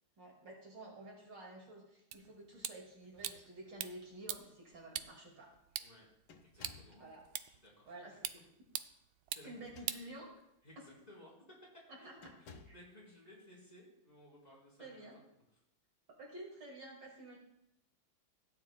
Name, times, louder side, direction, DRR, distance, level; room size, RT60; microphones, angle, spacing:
voice 1, 0.2-5.5 6.9-7.2 7.9-8.2 9.4-10.3 11.9-12.3 14.8-15.2 16.2-17.4, right 1 dB, 60° right, -2 dB, 2.9 m, -51 dB
sound 1, 2.1-10.7, right 12 dB, 80° right, 1.4 m, -46 dB
sound 2, 3.0-3.9 4.8-4.9 5.3-5.6 6.3-7.0 9.5-10.3 10.9-11.1 12.2-12.9, left 6 dB, 80° left, 1.8 m, -59 dB
voice 2, 6.4-7.0 7.5-7.9 8.2-8.4 9.3-9.9 10.6-15.0, equal, 20° left, -6 dB, 4.4 m, -59 dB
16.0 x 10.0 x 2.3 m, 0.82 s
omnidirectional pair, 2.3 m